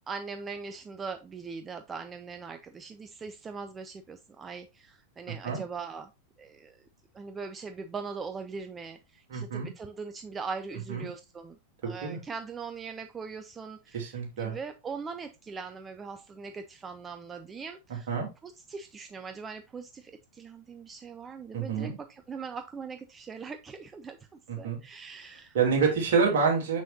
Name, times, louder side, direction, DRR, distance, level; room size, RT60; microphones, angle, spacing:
voice 1, 0.1-6.1 6.4-6.8 7.1-11.6 11.8-18.1 18.4-25.6, right 5 dB, 20° right, 8 dB, 0.5 m, -41 dB
voice 2, 9.3-9.7 10.9-11.1 11.8-12.2 13.9-14.5 18.1-18.3 21.5-21.9 24.5-24.8 25.5-26.8, right 5 dB, 55° right, 0 dB, 2.8 m, -27 dB
6.9 x 6.2 x 2.7 m, 0.26 s
figure-of-eight pair, 90°, 0 cm